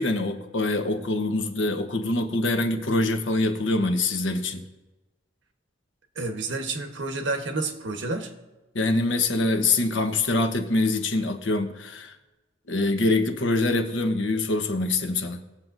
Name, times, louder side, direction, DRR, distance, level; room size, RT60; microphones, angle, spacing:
voice 1, 0.0-4.6 8.7-12.2 12.7-15.4, left 2 dB, 85° left, 6 dB, 1.1 m, -24 dB
voice 2, 6.1-8.3, right 3 dB, 85° right, 5 dB, 1.2 m, -30 dB
21.0 x 7.5 x 2.6 m, 1.1 s
head